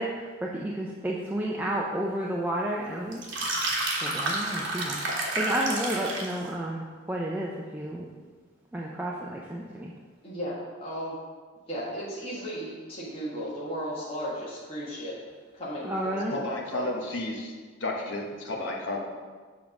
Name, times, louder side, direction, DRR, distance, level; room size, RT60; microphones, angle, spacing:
voice 1, 0.0-3.2 4.0-8.1 8.7-9.9 15.8-16.3, right 1 dB, 10° right, -3 dB, 0.4 m, -31 dB
sound 1, 3.1-6.4, right 2 dB, 60° right, 1.3 m, -30 dB
voice 2, 10.2-11.2 11.7-15.1 15.5-16.9, equal, 30° left, -8 dB, 1.6 m, -35 dB
voice 3, 16.3-17.5 17.8-19.0, left 2 dB, 65° left, 0 dB, 1.1 m, -32 dB
7.4 x 3.6 x 5.9 m, 1.5 s
head